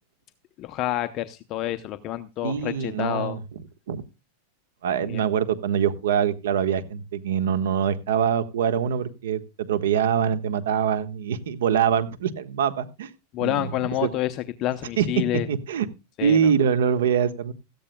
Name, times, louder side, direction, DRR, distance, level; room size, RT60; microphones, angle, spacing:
voice 1, 0.6-3.4 5.0-5.2 13.3-15.5 16.2-16.4, left 13 dB, 35° left, 9 dB, 0.7 m, -28 dB
voice 2, 2.4-3.4 3.9-4.0 4.8-13.1 13.4-14.1 15.0-15.9 16.2-17.5, right 8 dB, 90° right, 13 dB, 1.4 m, -24 dB
17.5 x 14.0 x 2.2 m, 0.28 s
supercardioid pair, 150°, 0 cm